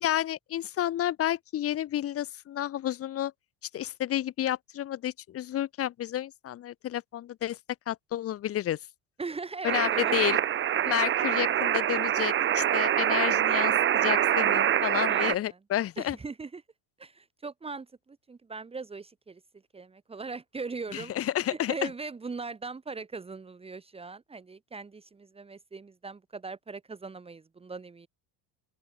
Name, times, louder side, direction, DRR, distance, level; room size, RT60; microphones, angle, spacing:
voice 1, 0.0-3.3 3.7-7.6 7.9-8.8 9.6-10.4 10.8-16.2 20.9-21.7, left 12 dB, 35° left, 1.2 m, -30 dB
voice 2, 9.2-10.4 15.1-15.6 16.0-16.6 17.0-19.4 19.7-21.1 21.5-28.1, right 4 dB, 15° right, 2.4 m, -40 dB
sound 1, 9.7-15.4, right 10 dB, 30° right, 1.2 m, -25 dB
open air
cardioid pair, 165°, 39 cm